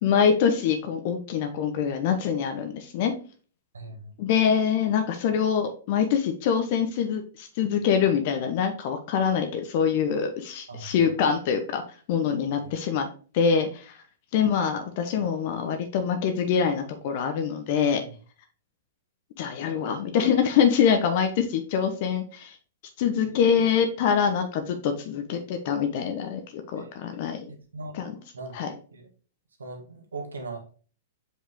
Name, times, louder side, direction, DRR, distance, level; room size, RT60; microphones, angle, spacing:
voice 1, 0.0-3.1 4.2-11.8 12.1-13.1 13.3-14.0 14.3-18.0 19.4-22.6 23.0-27.5 27.9-28.1 28.5-28.7, left 7 dB, 55° left, 6 dB, 1.0 m, -24 dB
voice 2, 3.7-4.1 10.7-10.9 12.6-12.7 18.0-18.1 23.2-23.4 26.8-26.9 27.7-28.0 28.3-28.5 28.9-29.1 29.6-30.7, right 3 dB, 85° right, 2 dB, 1.8 m, -39 dB
5.3 x 4.8 x 3.7 m, 0.38 s
hypercardioid pair, 115°, 0 cm